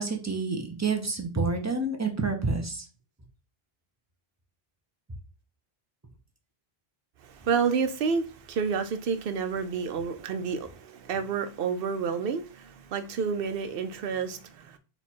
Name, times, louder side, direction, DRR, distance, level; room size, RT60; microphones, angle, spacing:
voice 1, 0.0-2.8, right 3 dB, 20° right, 0.7 m, -28 dB
voice 2, 7.2-14.8, right 6 dB, 70° right, 0.8 m, -29 dB
4.5 x 2.4 x 4.2 m
omnidirectional pair, 1.1 m